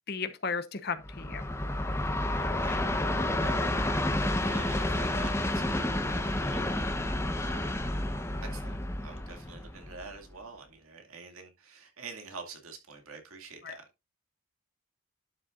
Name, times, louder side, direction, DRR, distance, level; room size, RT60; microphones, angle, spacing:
voice 1, 0.1-1.4 13.6-13.7, left 5 dB, 50° left, 1.0 m, -34 dB
Train, 1.0-10.3, left 1 dB, 10° left, 0.9 m, -30 dB
voice 2, 2.2-2.8 3.2-3.6 3.9-5.9 6.1-6.6 7.3-7.8 8.4-13.8, right 4 dB, 90° right, 2.4 m, -47 dB
11.0 x 6.7 x 2.5 m
head